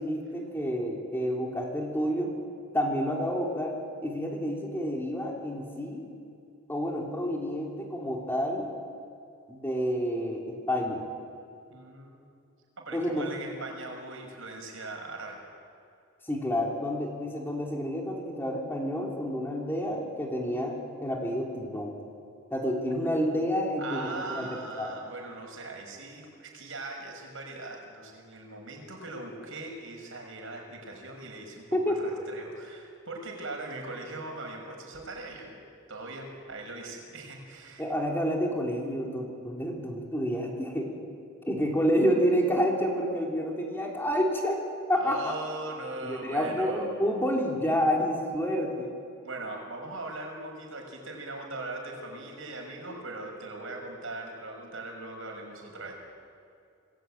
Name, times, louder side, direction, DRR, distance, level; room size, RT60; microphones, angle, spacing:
voice 1, 0.0-2.3 2.7-6.1 6.7-8.7 9.5-11.0 12.9-13.3 16.3-21.9 22.5-24.9 31.7-32.0 37.8-40.9 41.4-44.6 44.9-45.3 46.0-48.9, equal, 10° left, -1 dB, 3.5 m, -29 dB
voice 2, 11.7-12.2 12.8-15.4 23.8-35.5 35.9-37.8 45.0-46.9 49.2-55.9, right 2 dB, 65° right, 2 dB, 6.4 m, -40 dB
29.0 x 20.5 x 9.1 m, 2.4 s
head